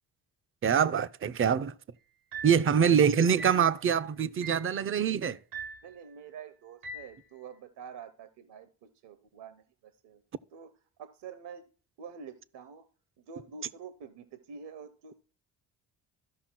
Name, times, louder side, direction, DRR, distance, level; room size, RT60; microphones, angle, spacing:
voice 1, 0.6-1.7 2.4-5.4, right 7 dB, 30° right, 0.6 m, -25 dB
sound 1, 2.3-2.7 3.4-3.7 4.4-4.7 5.5-5.9 6.8-7.2, right 3 dB, 85° right, 1.6 m, -41 dB
voice 2, 2.7-3.5 5.8-9.6 10.0-10.2 10.5-10.7 11.0-11.6 12.0-12.8 13.2-15.1, right 6 dB, 60° right, 1.0 m, -47 dB
13.5 x 5.6 x 4.5 m
hypercardioid pair, 50°, 46 cm